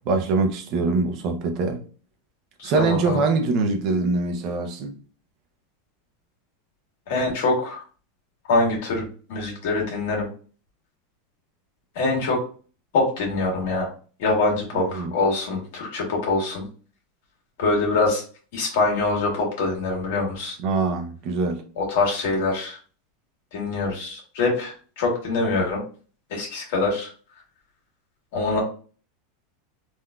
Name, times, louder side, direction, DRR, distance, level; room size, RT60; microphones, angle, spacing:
voice 1, 0.1-1.8 2.6-4.9 14.7-15.1 20.6-21.7, right 3 dB, 40° right, 0.6 m, -23 dB
voice 2, 2.6-3.2 7.1-7.8 8.4-10.3 11.9-12.4 12.9-13.9 14.2-16.7 17.6-18.2 18.5-20.6 21.8-22.8 23.5-25.8 26.3-27.1 28.3-28.6, left 3 dB, 65° left, 1.5 m, -24 dB
3.7 x 2.6 x 2.2 m
supercardioid pair, 150°, 0 cm